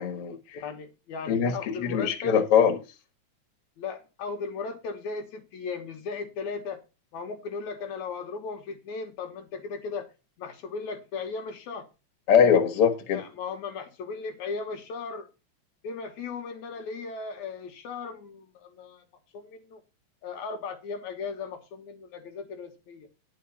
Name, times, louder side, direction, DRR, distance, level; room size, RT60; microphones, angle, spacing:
voice 1, 0.0-0.6 1.3-2.8 12.3-13.2, left 7 dB, 55° left, 2.3 m, -22 dB
voice 2, 0.5-2.4 3.8-6.8 7.1-10.1 10.4-11.9 13.1-15.3 15.8-19.1 19.3-19.8 20.2-23.1, left 4 dB, 80° left, 2.6 m, -37 dB
11.0 x 4.7 x 6.9 m
omnidirectional pair, 3.3 m